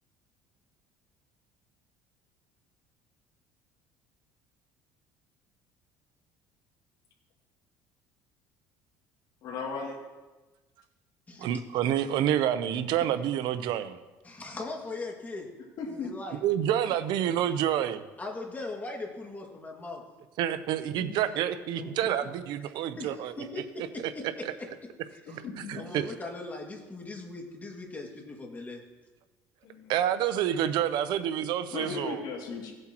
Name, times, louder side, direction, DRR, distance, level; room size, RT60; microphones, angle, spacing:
voice 1, 9.4-10.0 15.8-16.1 21.0-21.2 21.8-21.9 25.2-25.8 29.6-29.9 31.7-32.7, left 4 dB, 60° left, -2 dB, 2.7 m, -37 dB
voice 2, 11.4-14.0 16.4-18.0 20.4-24.1 24.4-24.5 25.7-26.1 29.9-32.2, right 10 dB, 70° right, 12 dB, 0.8 m, -28 dB
voice 3, 14.2-15.5 15.9-16.4 16.9-17.0 18.2-20.0 21.8-21.9 22.2-22.3 23.0-24.2 25.1-25.4 25.8-28.8, left 2 dB, 20° left, 1 dB, 2.2 m, -39 dB
16.5 x 7.9 x 3.0 m, 1.2 s
supercardioid pair, 100°, 8 cm